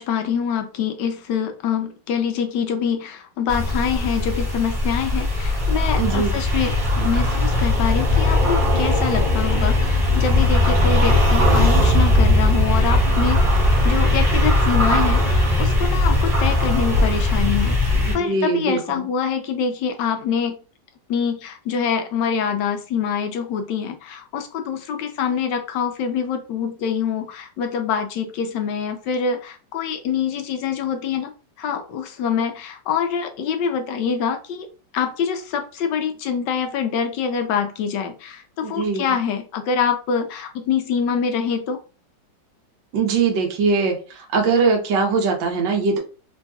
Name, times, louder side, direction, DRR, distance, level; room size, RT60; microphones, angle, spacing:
voice 1, 0.0-20.6 21.1-31.3 31.6-34.7 34.9-41.8, left 7 dB, 75° left, 7 dB, 1.2 m, -25 dB
sound 1, 3.5-18.2, left 1 dB, 25° right, 1.4 m, -19 dB
voice 2, 6.0-6.4 18.0-19.1 38.6-39.1 42.9-46.0, right 4 dB, 75° right, 1 dB, 1.6 m, -21 dB
3.8 x 2.8 x 2.3 m, 0.35 s
omnidirectional pair, 2.0 m